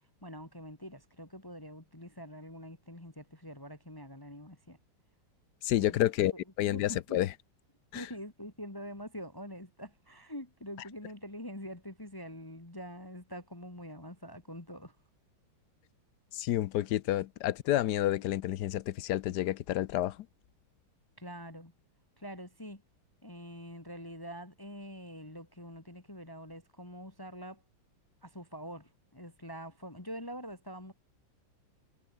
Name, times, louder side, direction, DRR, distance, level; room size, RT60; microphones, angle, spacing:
voice 1, 0.2-4.8 5.8-6.0 6.6-7.2 7.9-14.9 21.2-21.7 22.2-22.8 23.2-27.6 28.2-30.9, equal, 10° left, 1.8 m, -45 dB
voice 2, 5.6-6.3 6.6-7.3 7.9-8.1 16.3-20.3, left 13 dB, 65° left, 1.1 m, -29 dB
omnidirectional pair, 2.1 m